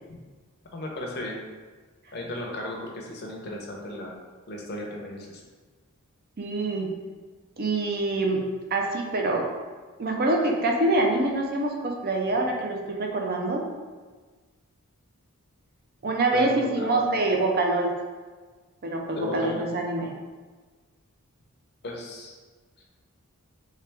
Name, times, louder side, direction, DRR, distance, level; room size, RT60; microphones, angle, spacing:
voice 1, 0.7-1.3 2.1-4.1 4.5-5.4 16.3-17.1 19.1-19.6 21.8-22.4, left 1 dB, 50° left, 0 dB, 0.7 m, -34 dB
voice 2, 6.4-6.9 7.6-9.5 10.0-13.6 16.0-17.9 18.8-20.1, right 2 dB, 45° right, 1 dB, 0.5 m, -25 dB
3.3 x 3.3 x 3.3 m, 1.4 s
head